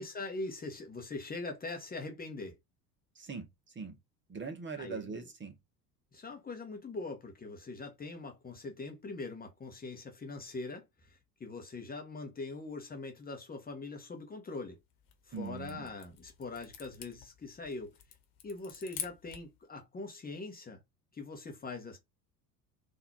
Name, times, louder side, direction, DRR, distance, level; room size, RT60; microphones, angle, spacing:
voice 1, 0.0-2.6 4.8-5.3 6.1-14.8 15.3-18.0 18.4-20.8 21.1-22.0, left 3 dB, 20° left, 1.1 m, -42 dB
voice 2, 3.1-3.9 4.3-5.5 15.3-15.9, right 5 dB, 25° right, 1.2 m, -41 dB
sound 1, 14.9-19.6, left 9 dB, 45° left, 1.4 m, -47 dB
3.9 x 2.7 x 4.3 m
figure-of-eight pair, 65°, 49 cm